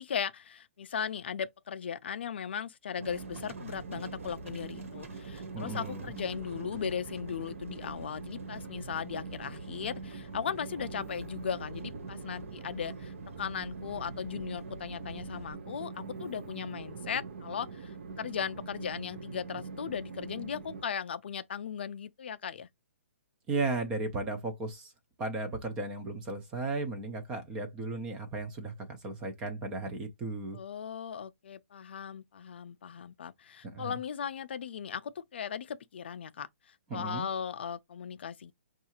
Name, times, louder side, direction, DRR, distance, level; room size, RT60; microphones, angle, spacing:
voice 1, 0.0-22.7 30.5-38.5, left 7 dB, 55° left, 0.3 m, -37 dB
Train, 3.0-20.8, right 4 dB, 60° right, 0.6 m, -43 dB
Livestock farm animals working animals, 3.0-15.5, right 1 dB, 80° right, 1.3 m, -49 dB
voice 2, 5.5-6.1 23.5-24.9 25.2-30.6 33.6-33.9 36.9-37.3, right 3 dB, 10° right, 0.4 m, -35 dB
5.3 x 2.4 x 2.8 m
hypercardioid pair, 175°, 7 cm